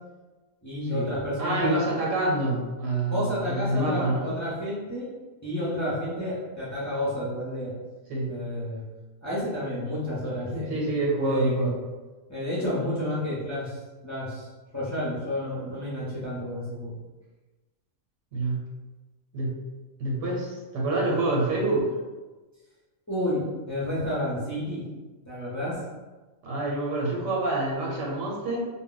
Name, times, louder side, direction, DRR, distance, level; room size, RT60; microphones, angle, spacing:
voice 1, 0.6-1.8 3.1-5.1 5.4-7.7 8.3-8.8 9.2-11.7 12.3-14.5 14.7-16.9 23.1-24.9 25.3-25.8, left 1 dB, 20° left, -9 dB, 0.6 m, -30 dB
voice 2, 1.4-4.3 8.1-8.3 10.7-11.8 18.3-18.6 19.3-19.6 20.0-21.9 26.4-28.7, right 2 dB, 80° right, -2 dB, 1.1 m, -27 dB
2.2 x 2.1 x 3.8 m, 1.2 s
omnidirectional pair, 1.3 m